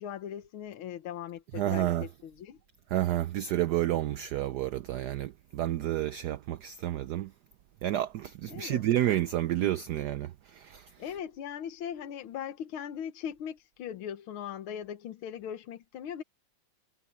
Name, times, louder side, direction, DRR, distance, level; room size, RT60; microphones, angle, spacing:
voice 1, 0.0-2.6 8.5-8.9 11.0-16.2, left 9 dB, 80° left, 1.9 m, -39 dB
voice 2, 1.5-2.1 2.9-7.3 7.8-11.2, right 13 dB, 75° right, 0.9 m, -30 dB
omnidirectional pair, 2.3 m